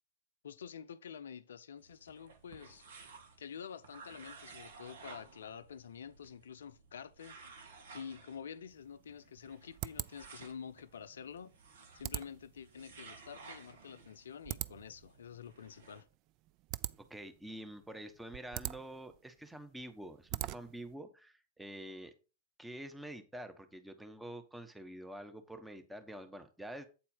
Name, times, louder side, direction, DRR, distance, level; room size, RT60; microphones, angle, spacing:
voice 1, 0.4-2.9 3.4-7.4 7.9-11.6 11.9-16.0, left 7 dB, 75° left, 0.6 m, -48 dB
sound 1, 1.8-16.0, right 4 dB, 70° right, 1.7 m, -56 dB
sound 2, 8.7-20.9, right 17 dB, 45° right, 0.4 m, -45 dB
voice 2, 17.0-22.1 22.6-26.9, right 1 dB, 5° right, 1.1 m, -47 dB
8.6 x 4.3 x 5.4 m
hypercardioid pair, 100°, 0 cm